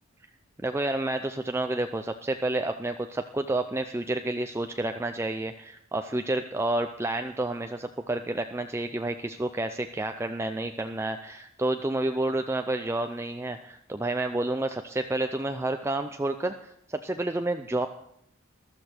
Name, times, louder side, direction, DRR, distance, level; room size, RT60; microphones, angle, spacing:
voice 1, 0.6-17.9, right 2 dB, 15° right, 7 dB, 0.5 m, -30 dB
14.5 x 13.0 x 4.4 m, 0.72 s
head